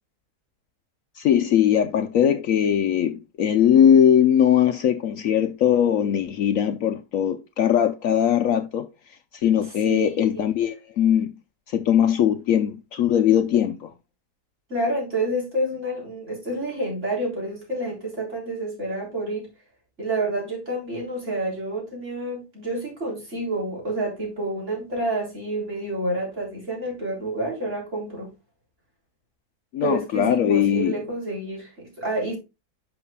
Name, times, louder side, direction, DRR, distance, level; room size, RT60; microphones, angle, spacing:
voice 1, 1.2-8.9 9.3-11.3 11.7-13.9 29.7-31.0, left 9 dB, 65° left, 0.9 m, -20 dB
voice 2, 14.7-19.5 20.0-28.3 29.8-32.4, right 1 dB, 45° right, 4.2 m, -29 dB
11.0 x 5.8 x 2.2 m
omnidirectional pair, 1.7 m